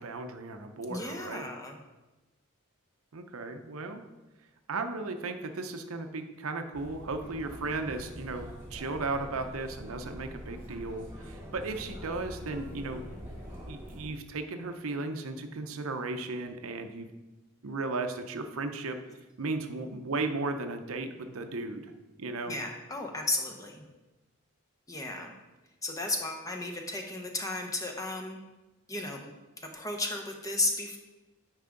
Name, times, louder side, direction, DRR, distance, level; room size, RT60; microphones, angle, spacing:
voice 1, 0.0-1.5 3.1-4.0 4.7-13.0 13.7-17.1 17.6-19.0 19.4-21.9 22.2-22.6, right 3 dB, 75° right, 7 dB, 0.6 m, -35 dB
voice 2, 0.9-1.8 22.5-23.9 24.9-25.4 25.8-28.4 28.9-29.3 29.7-31.0, left 2 dB, 15° left, 2 dB, 0.7 m, -34 dB
sound 1, 6.7-14.1, equal, 10° right, 1.7 m, -44 dB
9.2 x 4.9 x 3.8 m, 1.1 s
head